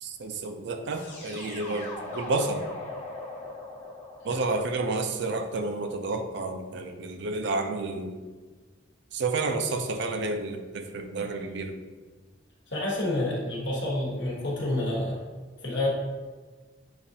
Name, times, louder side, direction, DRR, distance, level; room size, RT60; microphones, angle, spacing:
voice 1, 0.0-2.7 4.2-8.2 9.1-11.8, right 3 dB, 65° right, 6 dB, 0.4 m, -30 dB
sound 1, 0.9-5.8, left 2 dB, 35° left, 1.2 m, -40 dB
voice 2, 12.7-15.2 15.6-15.9, left 1 dB, 65° left, -4 dB, 1.3 m, -28 dB
7.0 x 2.5 x 2.7 m, 1.4 s
head